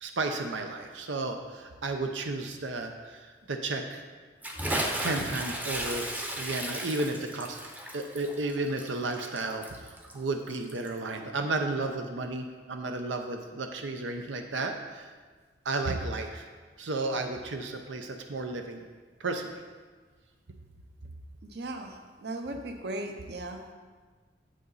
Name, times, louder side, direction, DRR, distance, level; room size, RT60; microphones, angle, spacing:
voice 1, 0.0-4.0 5.0-6.1 6.4-7.6 7.9-15.1 15.6-16.5 16.8-18.8 19.2-19.6, right 2 dB, 90° right, 5 dB, 0.7 m, -33 dB
Bathtub (filling or washing) / Splash splatter, 4.4-11.0, right 1 dB, 10° right, 0.7 m, -35 dB
voice 2, 21.4-23.7, right 1 dB, 60° right, 5 dB, 0.8 m, -38 dB
8.4 x 7.8 x 4.0 m, 1.4 s
head